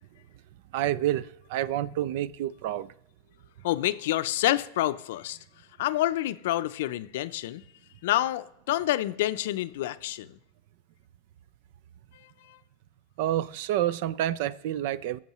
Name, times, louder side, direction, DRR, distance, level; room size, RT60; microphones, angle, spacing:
voice 1, 0.7-2.9 13.2-15.2, right 12 dB, 65° right, 0.4 m, -28 dB
voice 2, 3.6-5.4 5.8-7.6 8.0-10.3 12.5-12.6, left 14 dB, 75° left, 0.5 m, -28 dB
20.0 x 7.3 x 3.0 m
hypercardioid pair, 110°, 0 cm